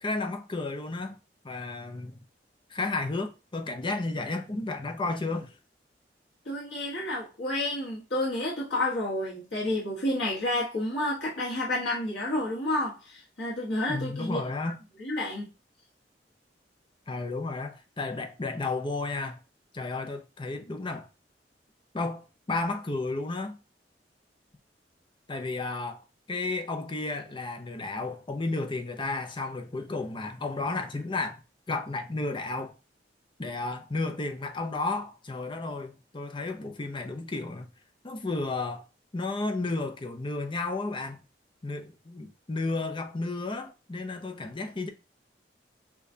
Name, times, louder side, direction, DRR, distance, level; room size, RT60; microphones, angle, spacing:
voice 1, 0.0-1.2 1.4-2.2 2.7-5.5 13.9-14.8 17.1-19.4 19.7-21.1 21.9-23.6 25.3-31.4 31.7-32.7 33.4-37.7 38.0-38.8 39.1-41.2 41.6-44.9, left 3 dB, 30° left, 0.6 m, -32 dB
voice 2, 6.4-14.7 15.0-15.5, left 1 dB, 80° left, 1.4 m, -30 dB
6.7 x 2.4 x 2.7 m
head